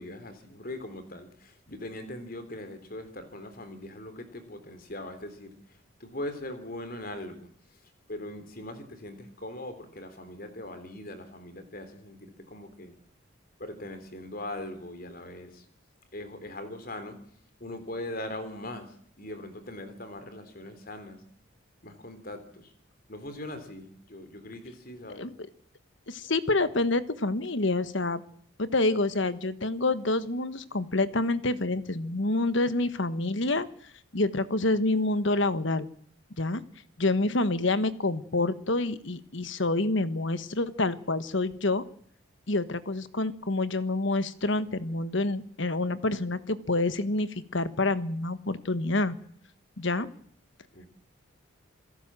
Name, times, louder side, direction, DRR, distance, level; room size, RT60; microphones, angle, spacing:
voice 1, 0.0-7.8 8.1-12.9 13.6-15.7 16.1-17.2 17.6-21.2 21.8-22.7 23.1-25.3 50.7-50.9, left 1 dB, 45° left, 10 dB, 3.6 m, -41 dB
voice 2, 26.1-28.2 28.6-33.7 34.1-35.9 36.4-36.6 37.0-41.8 42.5-49.2 49.8-50.1, left 2 dB, 60° left, 13 dB, 1.3 m, -27 dB
27.5 x 17.5 x 7.6 m, 0.63 s
head